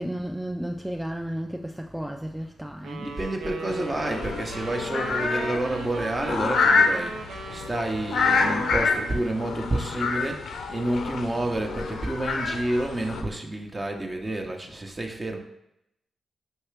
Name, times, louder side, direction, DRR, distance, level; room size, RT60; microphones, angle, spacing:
voice 1, 0.0-3.5, equal, 5° right, 0.3 m, -33 dB
sound 1, 2.8-9.8, right 3 dB, 75° right, 0.5 m, -38 dB
voice 2, 3.0-15.4, right 1 dB, 30° right, 0.9 m, -29 dB
sound 2, 3.7-13.2, left 4 dB, 75° left, 0.5 m, -27 dB
5.6 x 2.8 x 3.3 m
supercardioid pair, 40°, 0 cm